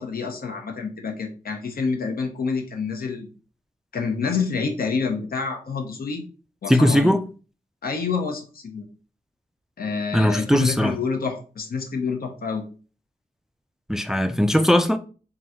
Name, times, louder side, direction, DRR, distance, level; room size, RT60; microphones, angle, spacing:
voice 1, 0.0-3.3 3.9-6.2 6.6-7.1 7.8-8.8 9.8-12.7, left 5 dB, 85° left, 0.9 m, -27 dB
voice 2, 6.7-7.2 10.1-11.0 13.9-15.0, equal, 5° right, 0.3 m, -19 dB
3.8 x 2.5 x 4.3 m
wide cardioid pair, 115°, 15 cm